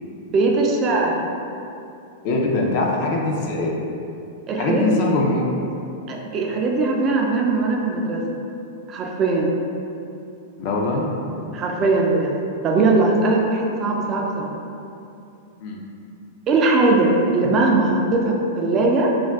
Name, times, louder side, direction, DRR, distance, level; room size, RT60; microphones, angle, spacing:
voice 1, 0.3-1.2 4.5-5.0 6.1-8.2 8.9-9.5 11.5-12.3 12.6-14.5 16.5-19.1, right 3 dB, 30° right, 0 dB, 0.3 m, -20 dB
voice 2, 2.2-3.8 4.6-5.5 10.6-11.4 15.6-15.8, left 2 dB, 50° left, -1 dB, 0.4 m, -22 dB
2.4 x 2.2 x 3.4 m, 2.6 s
hypercardioid pair, 140°, 0 cm